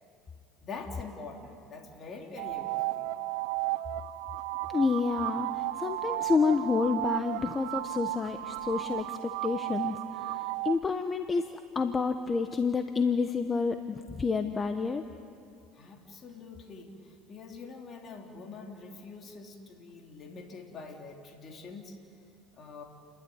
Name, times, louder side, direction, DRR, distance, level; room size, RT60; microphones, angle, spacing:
voice 1, 0.6-3.1 15.7-22.0 22.5-22.8, left 4 dB, 40° left, 2 dB, 3.3 m, -45 dB
sound 1, 2.4-10.8, right 17 dB, 80° right, 0.6 m, -34 dB
voice 2, 4.7-11.5 11.7-15.0, left 4 dB, 25° left, 8 dB, 1.1 m, -29 dB
29.5 x 12.5 x 9.6 m, 2.6 s
supercardioid pair, 90°, 0 cm